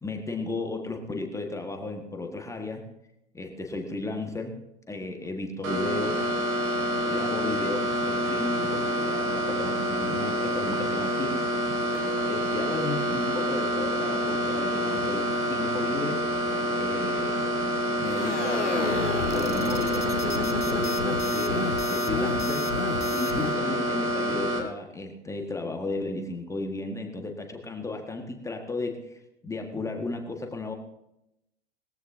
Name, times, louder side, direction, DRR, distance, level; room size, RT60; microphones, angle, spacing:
voice 1, 0.0-2.9 3.3-4.6 4.9-6.2 7.1-11.5 12.3-16.2 16.8-17.6 18.0-22.7 23.1-30.7, left 2 dB, 10° left, 3 dB, 1.7 m, -34 dB
sound 1, 5.6-24.6, equal, 45° right, 4.9 m, -27 dB
sound 2, 18.1-23.6, left 4 dB, 80° left, 1.1 m, -32 dB
20.5 x 15.0 x 2.8 m, 0.84 s
figure-of-eight pair, 95°, 35 cm